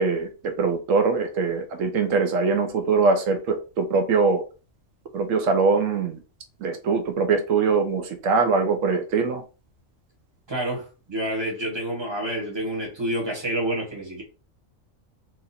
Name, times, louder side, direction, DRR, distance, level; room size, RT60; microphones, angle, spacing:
voice 1, 0.0-4.4 5.1-6.2 6.6-9.4, right 4 dB, 85° right, 6 dB, 1.0 m, -22 dB
voice 2, 10.5-14.2, right 1 dB, 20° right, -1 dB, 1.3 m, -28 dB
3.0 x 2.5 x 4.1 m, 0.33 s
omnidirectional pair, 1.3 m